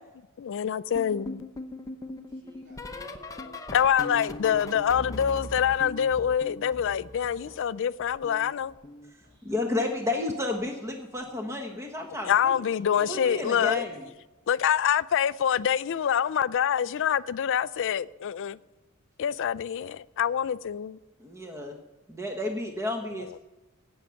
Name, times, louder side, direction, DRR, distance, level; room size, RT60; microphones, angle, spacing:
voice 1, 0.4-1.5 3.7-8.7 12.2-13.8 14.5-18.6 19.2-21.0, left 8 dB, 60° left, 0.4 m, -26 dB
sound 1, 0.9-7.7 8.0-9.6 10.6-10.9 11.2-11.5 13.1-13.3 13.7-13.9 15.5-15.6, left 2 dB, 15° left, 0.8 m, -41 dB
voice 2, 2.3-5.0 7.4-7.6 9.2-9.6 11.7-12.0 12.9-14.1 17.2-17.4, left 1 dB, 60° right, 5.8 m, -51 dB
voice 3, 9.4-12.6 13.1-14.0 21.2-21.8 22.1-23.4, left 2 dB, 15° right, 1.2 m, -31 dB
17.5 x 6.4 x 7.0 m
head